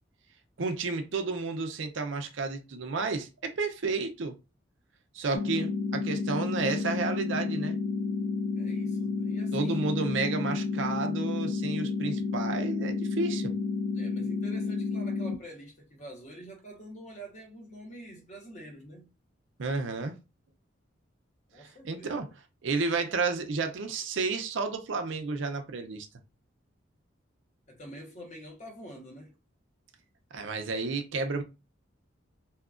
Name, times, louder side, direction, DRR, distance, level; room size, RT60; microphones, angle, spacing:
voice 1, 0.6-4.3 5.1-7.8 9.5-13.5 19.6-20.2 21.8-22.3 22.6-26.1 30.3-31.4, right 3 dB, 75° right, 0.5 m, -31 dB
sound 1, 5.3-15.4, left 4 dB, 60° left, 0.4 m, -31 dB
voice 2, 8.6-9.9 13.9-19.1 21.5-22.2 27.7-29.3, right 1 dB, 40° left, 1.0 m, -46 dB
2.8 x 2.3 x 2.4 m
head